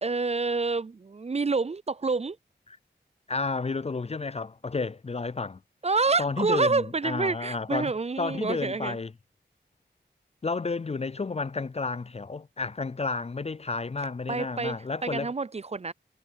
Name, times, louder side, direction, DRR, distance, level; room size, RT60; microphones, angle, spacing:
voice 1, 0.0-2.4 5.8-9.0 14.3-14.7 15.0-15.9, right 4 dB, 35° right, 0.4 m, -27 dB
voice 2, 3.3-5.6 6.2-7.9 8.2-9.1 10.4-15.3, left 4 dB, 35° left, 0.4 m, -31 dB
cardioid pair, 40°, 19 cm